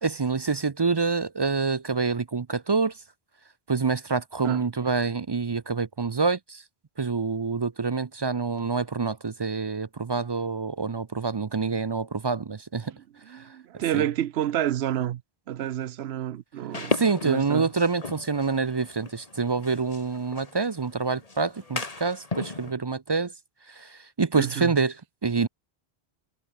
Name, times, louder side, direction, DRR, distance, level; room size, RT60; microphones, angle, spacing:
voice 1, 0.0-2.9 3.7-6.6 7.0-12.9 13.9-14.0 16.9-23.3 23.7-24.9 25.2-25.5, right 4 dB, 35° right, 0.4 m, -26 dB
voice 2, 13.2-15.2 15.5-16.9 17.2-17.7 24.4-24.8, right 11 dB, 80° right, 0.9 m, -29 dB
sound 1, 16.7-22.7, left 3 dB, 35° left, 1.8 m, -36 dB
omnidirectional pair, 1.1 m